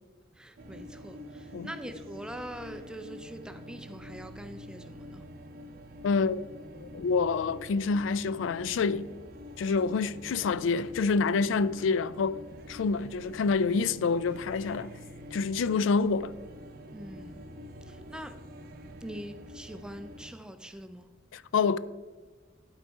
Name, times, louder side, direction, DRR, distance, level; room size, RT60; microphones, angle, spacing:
voice 1, 0.3-5.2 16.9-17.4 17.8-18.4 19.0-21.1, equal, 5° right, 0.4 m, -43 dB
sound 1, 0.6-20.3, equal, 50° right, 0.6 m, -46 dB
voice 2, 6.0-6.5 6.8-9.1 9.6-12.4 12.7-14.9 15.3-16.3 21.3-21.8, left 4 dB, 85° left, 0.3 m, -27 dB
12.0 x 4.1 x 4.6 m
head